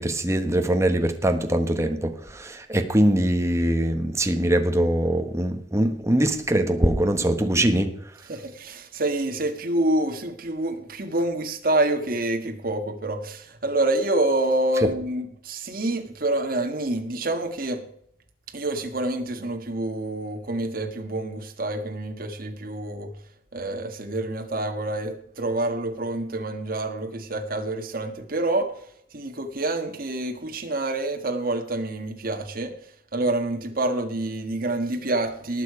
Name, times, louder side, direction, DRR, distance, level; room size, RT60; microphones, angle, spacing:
voice 1, 0.0-7.9, right 1 dB, 15° right, 1.2 m, -22 dB
voice 2, 8.3-17.8 18.5-23.1 23.5-28.7 29.1-32.7 33.1-35.6, right 2 dB, 55° right, 1.6 m, -27 dB
19.0 x 6.8 x 4.9 m
head